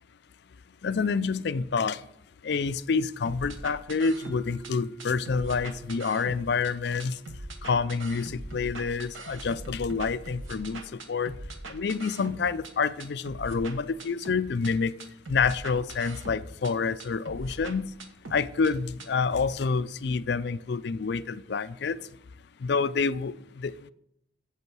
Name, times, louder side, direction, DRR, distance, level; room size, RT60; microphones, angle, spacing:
voice 1, 0.8-2.0 2.4-7.2 7.6-10.8 11.1-11.3 11.7-14.9 15.3-17.9 18.3-22.0 22.6-23.9, left 5 dB, 55° left, 0.4 m, -28 dB
sound 1, 3.3-4.7 5.0-6.7 7.0-12.7 13.0-14.7 15.0-16.7 17.0-18.7 19.0-19.1, right 2 dB, 85° right, 1.1 m, -41 dB
Mallet percussion, 4.2-8.7, right 4 dB, 50° right, 2.6 m, -50 dB
8.4 x 7.9 x 6.1 m
head